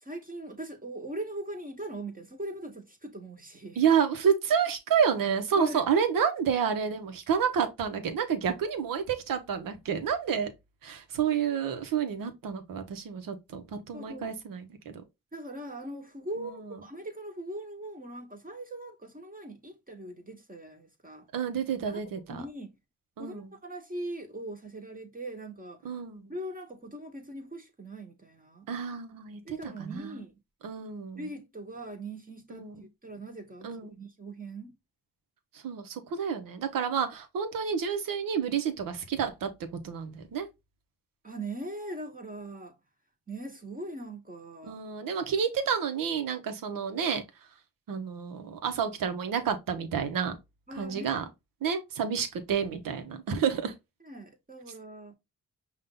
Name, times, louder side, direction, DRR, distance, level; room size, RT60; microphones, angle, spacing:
voice 1, 0.0-3.8 5.5-5.8 13.9-14.3 15.3-21.3 21.9-22.0 22.3-22.7 23.2-26.0 26.3-28.7 29.4-30.3 31.2-34.8 41.2-42.8 43.3-44.8 50.7-51.3 54.0-55.1, right 1 dB, 25° right, 1.2 m, -41 dB
voice 2, 3.8-10.5 10.8-14.9 16.4-16.5 21.3-22.4 23.2-23.5 25.8-26.3 28.7-30.2 30.6-31.2 32.5-32.7 33.6-33.9 35.6-39.5 39.8-40.5 44.7-47.2 47.9-50.4 50.8-51.2 51.6-53.7, right 7 dB, 85° right, 1.0 m, -29 dB
5.4 x 2.4 x 3.7 m
cardioid pair, 55°, 33 cm